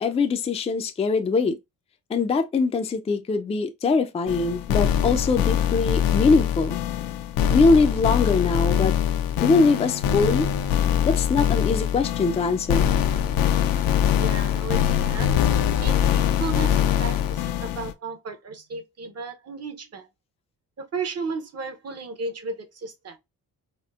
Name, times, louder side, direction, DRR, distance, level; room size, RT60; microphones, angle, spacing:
voice 1, 0.0-1.6 2.1-6.8 7.5-8.9 9.4-10.5 11.0-12.9, left 4 dB, 20° left, 0.3 m, -22 dB
sound 1, 4.3-17.9, left 9 dB, 80° left, 0.5 m, -23 dB
voice 2, 14.2-15.3 15.8-20.1 20.8-23.2, right 4 dB, 45° right, 0.7 m, -34 dB
4.3 x 2.1 x 2.3 m
cardioid pair, 105°, 35 cm